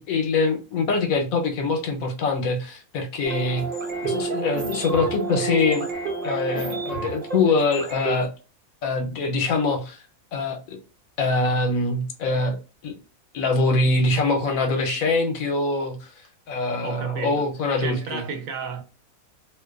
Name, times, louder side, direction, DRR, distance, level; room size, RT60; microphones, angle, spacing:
voice 1, 0.0-3.7 4.0-5.9 6.2-8.3 8.8-10.0 10.3-10.8 11.2-12.6 12.8-12.9 13.3-18.2, left 3 dB, 75° left, 1.1 m, -24 dB
sound 1, 3.2-8.3, right 4 dB, 45° right, 0.8 m, -30 dB
voice 2, 16.8-17.5 17.8-18.8, right 6 dB, 75° right, 0.9 m, -32 dB
2.6 x 2.1 x 2.3 m
omnidirectional pair, 1.5 m